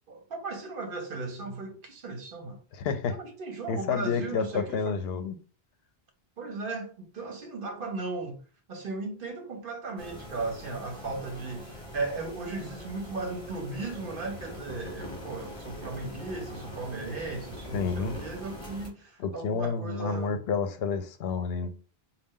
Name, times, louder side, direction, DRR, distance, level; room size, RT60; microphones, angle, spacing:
voice 1, 0.1-2.6 3.1-5.0 6.4-8.4 8.7-20.4, right 3 dB, 60° right, 0.9 m, -36 dB
voice 2, 2.7-3.2 3.7-5.3 17.7-18.1 19.2-21.7, left 5 dB, 85° left, 0.8 m, -29 dB
sound 1, 10.0-18.9, equal, 30° left, 1.3 m, -43 dB
4.0 x 2.3 x 3.7 m
omnidirectional pair, 1.0 m